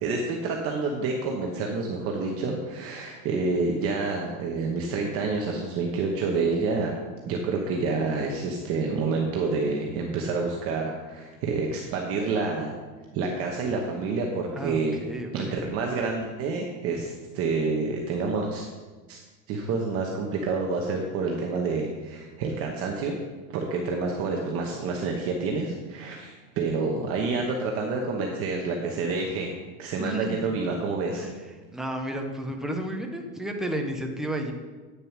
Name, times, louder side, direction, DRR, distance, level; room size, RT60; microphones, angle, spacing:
voice 1, 0.0-6.9 7.3-12.7 13.1-15.0 15.3-18.7 19.1-19.2 19.5-23.1 23.5-29.5 29.8-31.3, right 4 dB, 35° right, 0 dB, 1.0 m, -28 dB
voice 2, 14.5-15.7 30.0-30.6 31.1-31.3 31.7-34.5, right 1 dB, ahead, 3 dB, 0.4 m, -32 dB
9.0 x 6.7 x 5.9 m, 1.3 s
supercardioid pair, 155°, 42 cm